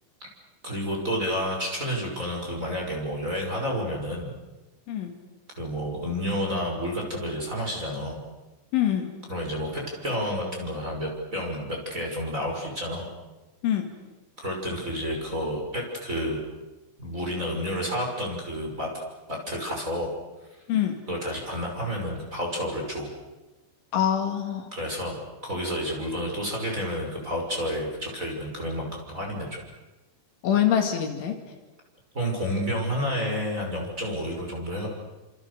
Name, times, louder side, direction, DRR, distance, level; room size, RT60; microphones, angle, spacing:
voice 1, 0.6-4.4 5.6-8.2 9.3-13.1 14.4-16.4 17.0-18.9 19.3-20.1 21.1-23.1 24.7-25.2 25.4-29.6 32.1-34.9, equal, 15° right, -1 dB, 5.9 m, -30 dB
voice 2, 8.7-9.1 13.6-13.9 20.7-21.0 23.9-24.7 30.4-31.4, left 10 dB, 70° left, 4 dB, 4.4 m, -24 dB
29.5 x 27.0 x 6.8 m, 1.1 s
omnidirectional pair, 6.0 m